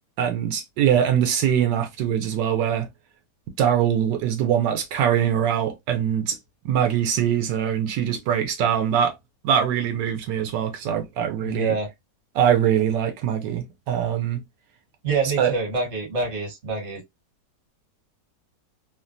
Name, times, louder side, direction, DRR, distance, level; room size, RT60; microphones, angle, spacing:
voice 1, 0.2-2.9 3.6-6.4 6.6-9.1 9.4-11.7 12.3-14.4 15.4-15.5, right 9 dB, 85° right, 1.3 m, -22 dB
voice 2, 11.4-11.9 15.0-17.0, right 4 dB, 45° right, 1.4 m, -26 dB
3.2 x 2.2 x 2.4 m
omnidirectional pair, 1.8 m